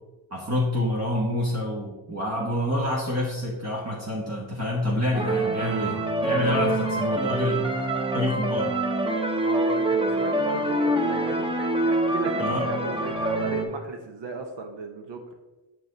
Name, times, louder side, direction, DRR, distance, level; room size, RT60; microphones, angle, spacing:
voice 1, 0.3-5.9 6.2-7.7 8.1-8.7 12.4-12.6, left 1 dB, 30° right, -4 dB, 1.4 m, -27 dB
sound 1, 5.1-13.7, right 1 dB, 10° right, 1.0 m, -25 dB
voice 2, 6.4-6.7 9.4-11.5 11.8-15.2, right 3 dB, 55° right, 4 dB, 1.0 m, -35 dB
7.7 x 4.6 x 3.9 m, 1.1 s
cardioid pair, 95°, 50 cm